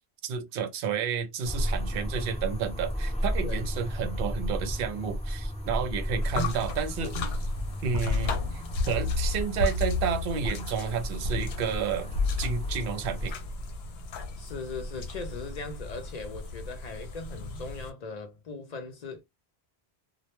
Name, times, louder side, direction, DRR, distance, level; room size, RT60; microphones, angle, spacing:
voice 1, 0.2-7.1 7.8-12.1 12.4-13.3, right 7 dB, 65° right, 0.7 m, -31 dB
sound 1, 1.4-13.3, equal, 5° left, 0.6 m, -33 dB
sound 2, 6.2-17.9, left 4 dB, 75° left, 0.8 m, -33 dB
voice 2, 14.4-19.2, left 4 dB, 55° left, 0.5 m, -39 dB
2.1 x 2.1 x 2.9 m
omnidirectional pair, 1.1 m